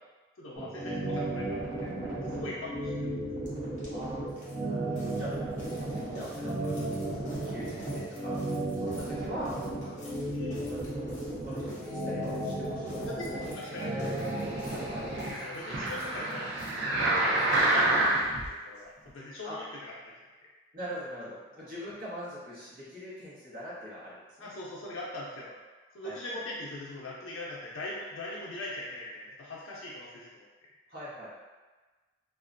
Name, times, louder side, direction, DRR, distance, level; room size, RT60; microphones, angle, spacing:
voice 1, 0.4-3.1 3.9-4.0 4.9-5.0 10.3-10.7 13.1-14.5 15.3-16.5 17.2-18.1 18.5-20.1 24.4-25.6 25.9-30.4, left 1 dB, 90° left, -5 dB, 0.5 m, -41 dB
sound 1, 0.6-15.3, right 1 dB, 25° right, 0.8 m, -34 dB
sound 2, 3.5-3.6 3.8-18.2 18.4-18.5 18.8-18.9 19.1-19.2, left 1 dB, 35° left, 0.8 m, -49 dB
voice 2, 3.9-5.3 5.7-8.5 8.8-10.2 10.6-10.8 11.3-13.1 14.7-15.0 19.4-19.6 20.7-24.5 26.0-26.4 30.9-31.4, equal, 45° right, -10 dB, 1.1 m, -43 dB
sound 3, 13.9-18.5 19.1-19.2, right 1 dB, 65° right, 0.6 m, -28 dB
2.9 x 2.4 x 2.5 m, 1.3 s
head